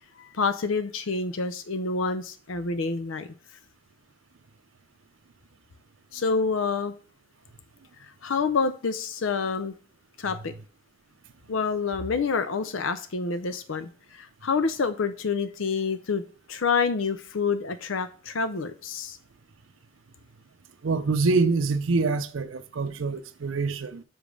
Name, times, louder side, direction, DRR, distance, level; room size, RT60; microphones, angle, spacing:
voice 1, 0.2-3.3 6.1-6.9 8.0-9.7 10.2-10.5 11.5-16.2 16.5-19.2, left 4 dB, 85° left, 0.6 m, -28 dB
voice 2, 20.8-24.0, right 3 dB, 85° right, 0.5 m, -25 dB
6.3 x 5.0 x 5.2 m
head